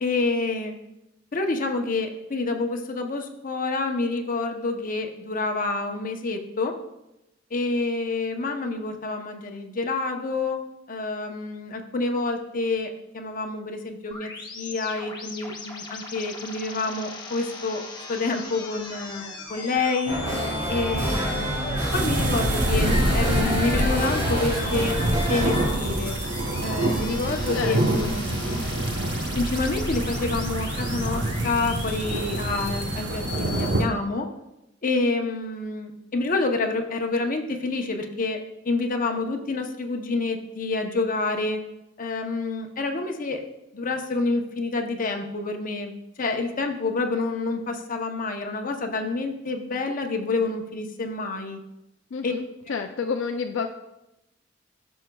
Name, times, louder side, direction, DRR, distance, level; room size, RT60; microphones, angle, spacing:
voice 1, 0.0-0.7 1.3-6.8 7.5-10.6 10.9-12.9 13.1-20.2 20.7-25.0 25.3-26.2 26.6-28.4 29.4-34.3 34.8-38.4 38.6-41.6 42.0-43.4 43.7-51.6 52.2-52.3, left 3 dB, 45° left, 4 dB, 0.8 m, -28 dB
sound 1, 14.1-33.8, left 3 dB, 25° left, 1.1 m, -39 dB
sound 2, 20.0-25.7, equal, 35° right, 3.1 m, -27 dB
sound 3, 21.9-33.8, right 1 dB, 65° right, 0.9 m, -26 dB
voice 2, 27.5-28.1 52.1-52.4 52.7-53.7, left 5 dB, 70° left, 5 dB, 0.4 m, -29 dB
13.5 x 6.3 x 2.3 m, 0.92 s
head